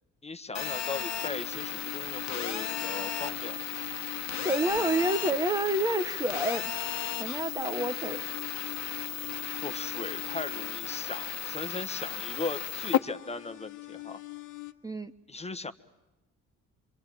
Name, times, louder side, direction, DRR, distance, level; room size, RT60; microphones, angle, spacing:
voice 1, 0.2-3.6 9.6-14.2 15.3-15.7, left 3 dB, 20° left, 10 dB, 1.2 m, -38 dB
Telephone, 0.5-13.0, left 10 dB, 65° left, 1.3 m, -34 dB
sound 1, 1.2-14.7, left 18 dB, 85° left, 1.6 m, -45 dB
voice 2, 4.4-6.7 7.2-8.2 14.8-15.1, right 1 dB, 10° right, 9 dB, 0.9 m, -28 dB
25.5 x 25.0 x 9.0 m, 1.0 s
cardioid pair, 90°, 30 cm